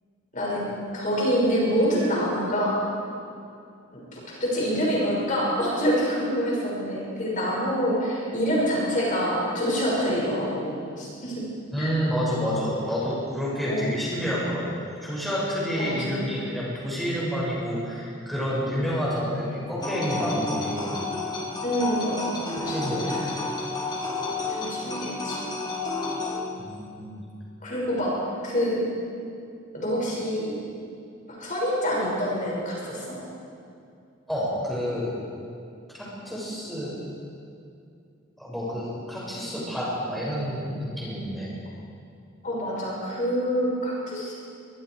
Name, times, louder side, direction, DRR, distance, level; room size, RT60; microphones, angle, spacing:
voice 1, 0.3-0.7 0.9-2.8 4.1-11.5 11.8-12.0 13.6-13.9 15.8-16.2 21.6-23.2 24.5-25.4 27.6-28.2 28.4-28.9 29.7-30.6 31.3-33.2 42.4-44.3, equal, 40° left, -4 dB, 6.1 m, -26 dB
voice 2, 11.7-21.0 22.6-23.1 26.6-27.1 34.3-35.1 35.9-37.0 38.4-41.5, equal, ahead, -7 dB, 6.3 m, -29 dB
sound 1, 19.8-26.4, left 3 dB, 20° left, 2.5 m, -31 dB
24.0 x 23.5 x 4.8 m, 2.5 s
head